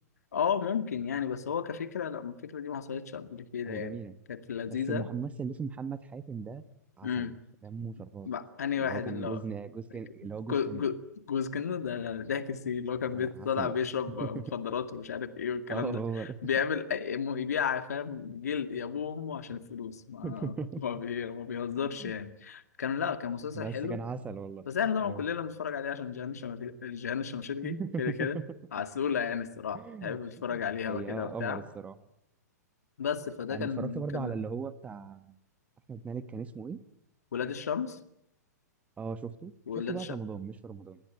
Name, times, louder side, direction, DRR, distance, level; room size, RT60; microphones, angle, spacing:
voice 1, 0.3-4.0 4.3-5.1 7.0-7.3 8.2-9.4 10.5-11.0 11.3-24.0 24.7-28.4 28.7-31.6 33.0-34.3 37.3-38.0 39.7-40.2, left 7 dB, 65° left, 10 dB, 2.2 m, -33 dB
voice 2, 3.6-4.1 4.7-6.6 7.0-7.3 7.6-8.3 8.8-10.8 13.1-13.7 14.2-14.3 15.7-16.4 20.2-20.8 21.9-22.1 23.5-24.6 25.0-25.2 27.6-28.4 29.7-30.2 30.5-31.9 33.5-35.4 35.9-36.8 39.0-41.0, right 5 dB, 15° right, 14 dB, 1.2 m, -38 dB
27.0 x 20.5 x 9.3 m, 0.77 s
figure-of-eight pair, 105°, 9 cm